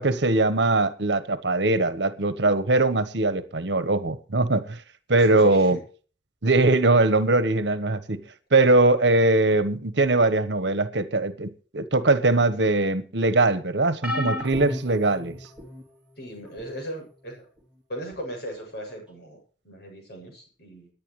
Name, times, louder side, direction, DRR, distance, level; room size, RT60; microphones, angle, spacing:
voice 1, 0.0-4.8 5.1-5.8 6.4-8.2 8.5-15.4, right 2 dB, 70° right, 1.3 m, -21 dB
voice 2, 5.2-5.8 16.2-17.5 17.9-19.4 19.6-20.9, equal, 55° left, 7.6 m, -38 dB
sound 1, 14.0-15.8 16.6-16.8 18.1-18.2, left 1 dB, 5° right, 3.0 m, -33 dB
22.5 x 10.5 x 3.3 m
head